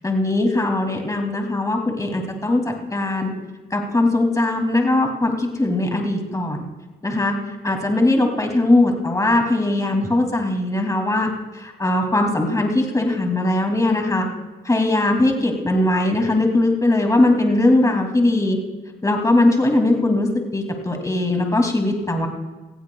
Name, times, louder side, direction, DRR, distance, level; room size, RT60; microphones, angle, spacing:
voice 1, 0.0-3.3 3.7-6.6 7.0-7.4 7.6-14.3 14.6-18.6 19.0-22.3, left 2 dB, 15° left, 3 dB, 2.5 m, -20 dB
18.5 x 15.5 x 2.3 m, 1.2 s
cardioid pair, 90°, 20 cm